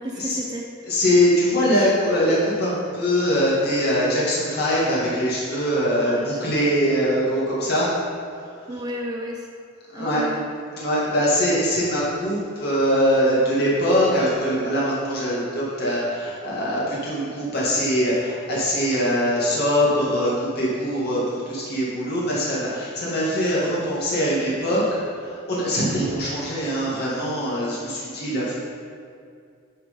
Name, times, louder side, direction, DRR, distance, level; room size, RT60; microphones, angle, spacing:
voice 1, 0.0-0.7 6.0-6.4 8.7-9.5 9.9-10.5, equal, 20° right, 0 dB, 0.6 m, -32 dB
voice 2, 0.8-7.9 8.4-8.5 9.9-10.3 10.7-28.6, equal, 50° left, -7 dB, 2.0 m, -22 dB
10.5 x 5.8 x 5.1 m, 2.3 s
head